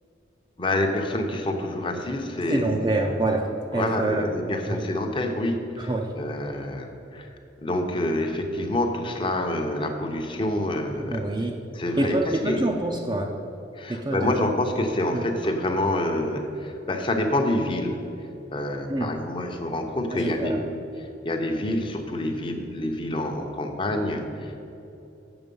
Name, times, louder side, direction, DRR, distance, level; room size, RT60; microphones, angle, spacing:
voice 1, 0.6-2.6 3.7-5.9 6.2-7.3 7.6-11.2 11.7-12.7 13.7-18.0 18.5-20.6 21.0-24.7, left 1 dB, 25° left, 4 dB, 0.7 m, -27 dB
voice 2, 2.5-4.3 4.7-4.8 5.8-6.1 11.1-11.6 12.0-13.4 13.9-14.5 15.1-15.2 18.9-19.1 20.1-20.6, right 2 dB, 25° right, 1 dB, 0.5 m, -26 dB
7.9 x 6.6 x 5.4 m, 2.9 s
head